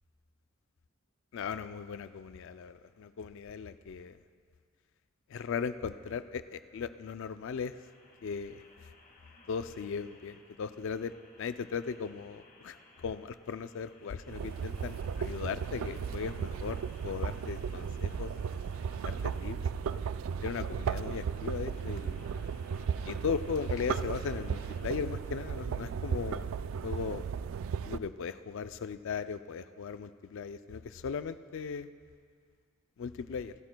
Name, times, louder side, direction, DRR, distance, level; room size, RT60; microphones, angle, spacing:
voice 1, 1.3-4.2 5.3-7.7 8.2-8.6 9.5-11.1 11.4-18.3 19.0-19.6 20.4-22.3 23.0-26.5 26.8-27.3 27.9-31.9 33.0-33.5, left 6 dB, 65° left, 12 dB, 0.4 m, -37 dB
sound 1, 7.7-24.8, left 2 dB, 45° left, 1.5 m, -59 dB
sound 2, 14.3-28.0, right 6 dB, 70° right, 0.3 m, -35 dB
26.0 x 12.0 x 2.2 m, 2.1 s
head